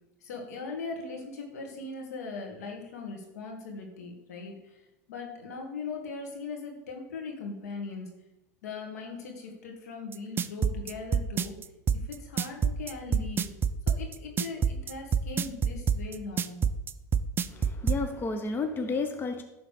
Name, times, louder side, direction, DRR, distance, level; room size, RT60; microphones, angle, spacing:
voice 1, 0.2-4.8 5.1-8.1 8.6-11.5 11.9-13.5 13.9-16.7, left 4 dB, 85° left, 1 dB, 2.3 m, -39 dB
sound 1, 10.1-18.0, right 7 dB, 25° right, 0.5 m, -26 dB
voice 2, 17.5-19.4, left 3 dB, 25° left, 5 dB, 1.0 m, -31 dB
11.5 x 4.0 x 6.7 m, 0.99 s
hypercardioid pair, 105°, 8 cm